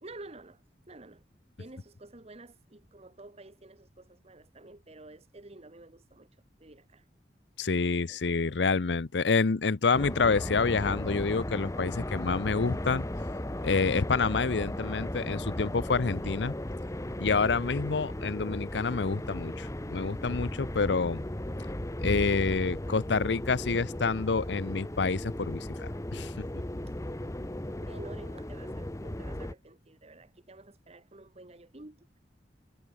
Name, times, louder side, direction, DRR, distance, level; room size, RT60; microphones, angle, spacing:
voice 1, 0.0-1.2 1.6-6.3 6.6-7.0 8.1-8.5 16.2-16.4 27.7-32.2, right 2 dB, 35° right, 1.5 m, -50 dB
voice 2, 7.6-13.1 13.6-16.5 17.2-21.2 22.0-26.5, left 4 dB, 80° left, 0.7 m, -28 dB
sound 1, 9.9-29.5, left 1 dB, 20° left, 1.1 m, -36 dB
head